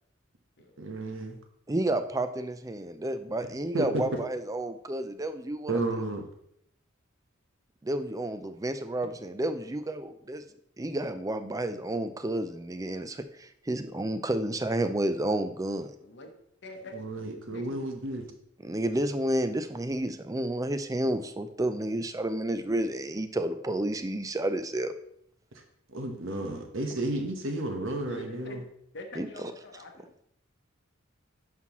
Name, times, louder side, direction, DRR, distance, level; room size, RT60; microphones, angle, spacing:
voice 1, 0.8-1.4 3.7-4.0 5.7-6.2 16.9-18.2 25.9-28.6, right 2 dB, 70° right, 3 dB, 1.2 m, -32 dB
voice 2, 1.7-6.0 7.8-10.4 10.8-15.9 18.6-24.9 29.2-29.5, right 1 dB, 15° right, 10 dB, 0.4 m, -31 dB
voice 3, 16.6-17.2 17.5-17.8 28.1-28.6 28.9-30.1, left 1 dB, 55° left, 3 dB, 0.9 m, -44 dB
9.5 x 6.0 x 3.0 m, 0.72 s
head